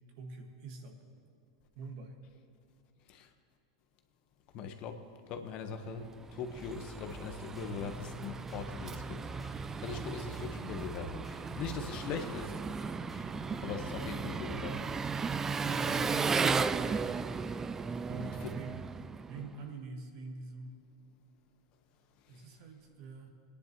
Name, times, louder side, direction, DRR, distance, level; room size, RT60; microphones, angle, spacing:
voice 1, 0.2-1.2 1.7-2.2 15.7-16.3 18.1-18.9 19.3-20.8 22.3-23.3, right 3 dB, 60° right, 3 dB, 1.6 m, -45 dB
voice 2, 4.5-9.3 9.8-11.3 11.5-12.6 13.6-14.9 15.9-16.0 18.2-18.7, left 6 dB, 50° left, 6 dB, 1.1 m, -41 dB
Engine, 6.0-19.6, right 5 dB, 20° right, 0.3 m, -35 dB
sound 1, 7.1-14.5, left 1 dB, ahead, 1.6 m, -52 dB
23.0 x 10.0 x 3.0 m, 2.6 s
hypercardioid pair, 100°, 2 cm